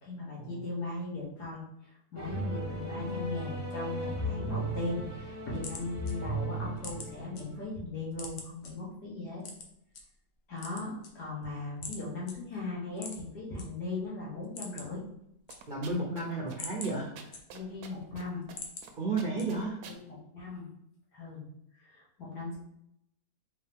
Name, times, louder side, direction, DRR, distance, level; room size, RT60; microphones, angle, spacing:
voice 1, 0.0-9.4 10.5-15.0 16.3-16.5 17.5-18.4 19.5-19.6 20.0-20.7 21.1-21.5 21.8-22.6, left 2 dB, 85° left, -4 dB, 2.0 m, -38 dB
sound 1, 2.2-7.7, right 1 dB, 15° right, 0.6 m, -36 dB
sound 2, 5.5-7.4 7.8-8.7 9.4-10.0 10.5-11.5 11.8-12.0 12.3-12.4 12.9-13.7 14.0-14.1 14.4-15.0 15.3-16.0 16.4-17.8 18.2-18.9 19.4-19.8, left 4 dB, 55° left, 0.7 m, -44 dB
sound 3, 15.5-16.2 16.5-16.6 16.8-18.2 18.5-18.9 19.2-20.0, right 6 dB, 75° right, 1.1 m, -48 dB
voice 2, 15.7-17.3 19.0-19.8, right 3 dB, 50° right, -2 dB, 0.6 m, -33 dB
4.7 x 2.9 x 3.5 m, 0.78 s
omnidirectional pair, 1.7 m